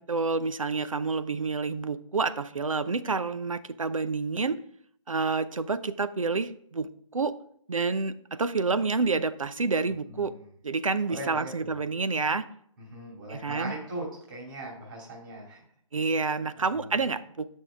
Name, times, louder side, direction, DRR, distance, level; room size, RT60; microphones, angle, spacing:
voice 1, 0.0-4.6 5.1-7.4 7.7-10.3 10.6-12.5 13.3-13.7 15.9-17.5, right 4 dB, 80° right, 13 dB, 0.7 m, -28 dB
voice 2, 10.1-10.5 11.0-11.7 12.8-15.6 15.9-16.2 16.5-17.1, right 1 dB, 40° right, -2 dB, 2.8 m, -40 dB
9.0 x 6.3 x 3.5 m, 0.65 s
figure-of-eight pair, 140°, 17 cm